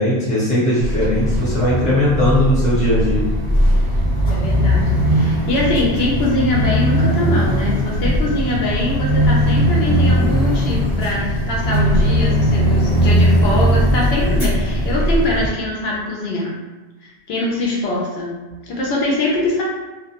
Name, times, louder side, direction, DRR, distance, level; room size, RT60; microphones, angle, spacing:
voice 1, 0.0-3.3, left 1 dB, 5° left, -11 dB, 1.0 m, -18 dB
sound 1, 0.8-15.5, equal, 40° left, 0.9 m, -18 dB
voice 2, 4.3-16.6 17.3-18.4 18.7-19.6, left 2 dB, 75° left, -4 dB, 0.8 m, -23 dB
2.2 x 2.1 x 2.8 m, 1.2 s
omnidirectional pair, 1.0 m